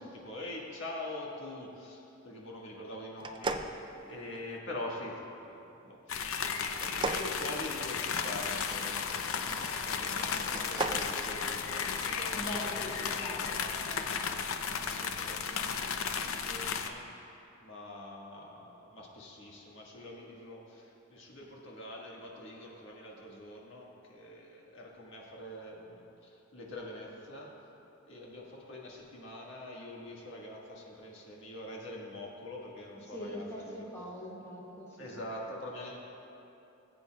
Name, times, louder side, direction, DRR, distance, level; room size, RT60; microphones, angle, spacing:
voice 1, 0.0-14.1 14.6-17.3 17.6-27.5 28.0-33.8 35.0-36.0, left 1 dB, 65° left, -3 dB, 1.6 m, -45 dB
sound 1, 3.2-4.6 6.8-8.3 10.4-11.1, right 3 dB, 25° right, 0.4 m, -36 dB
sound 2, 6.1-16.9, left 6 dB, 80° left, 0.6 m, -34 dB
sound 3, 7.8-13.5, left 1 dB, 35° left, 0.8 m, -48 dB
voice 2, 12.3-13.4 33.1-35.0, equal, 15° left, -7 dB, 2.2 m, -41 dB
19.5 x 8.2 x 2.3 m, 2.9 s
head